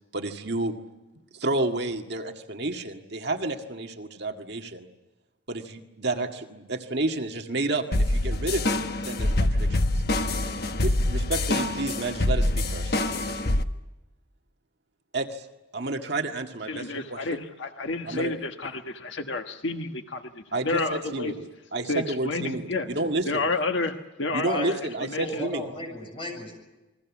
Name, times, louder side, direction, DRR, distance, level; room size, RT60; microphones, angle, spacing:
voice 1, 0.1-0.7 1.3-4.9 5.5-8.8 9.0-9.8 10.8-13.3 15.1-15.5 15.7-17.4 18.1-18.3 20.5-23.4 24.3-25.7, right 2 dB, 55° right, 4 dB, 1.9 m, -30 dB
sound 1, 7.9-13.6, left 1 dB, 50° left, 1.2 m, -25 dB
voice 2, 16.7-21.3 21.9-22.9 23.3-25.5, left 3 dB, 65° left, 5 dB, 1.5 m, -30 dB
voice 3, 25.2-26.5, equal, 25° left, 2 dB, 7.4 m, -34 dB
28.5 x 21.5 x 7.3 m, 1.1 s
head